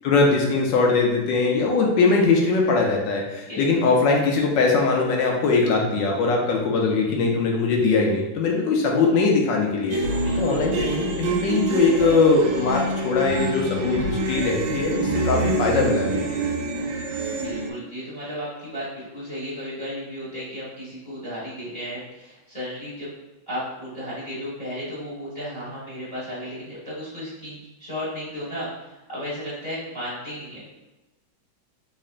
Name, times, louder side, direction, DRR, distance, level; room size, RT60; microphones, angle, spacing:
voice 1, 0.0-10.0 10.4-16.4, left 3 dB, 75° left, 0 dB, 1.2 m, -21 dB
sound 1, 9.9-17.7, right 2 dB, 80° right, 1.3 m, -26 dB
voice 2, 10.2-10.5 17.3-23.1 23.5-28.7 28.9-30.7, equal, 25° left, -9 dB, 1.4 m, -34 dB
3.7 x 3.2 x 2.4 m, 1.1 s
omnidirectional pair, 2.2 m